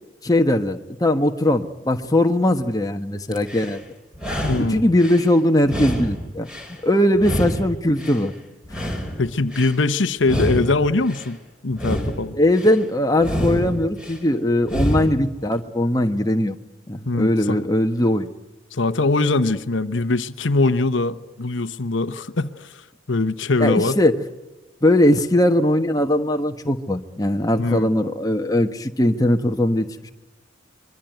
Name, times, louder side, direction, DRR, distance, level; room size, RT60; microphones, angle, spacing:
voice 1, 0.2-3.8 4.5-8.3 12.3-16.6 16.9-18.3 23.6-24.3 24.8-30.1, left 1 dB, 20° left, 5 dB, 1.3 m, -20 dB
sound 1, 3.3-3.8 4.1-5.3 5.6-6.8 7.2-8.3 8.6-9.8 10.2-11.3 11.7-12.8 13.2-14.2 14.6-15.3, equal, 5° right, 4.6 m, -27 dB
voice 2, 4.4-4.9 9.2-11.4 11.6-12.3 17.1-17.6 18.7-22.8 23.1-24.0 27.6-27.9, left 3 dB, 70° left, 12 dB, 1.0 m, -22 dB
25.5 x 22.5 x 9.2 m, 1.1 s
head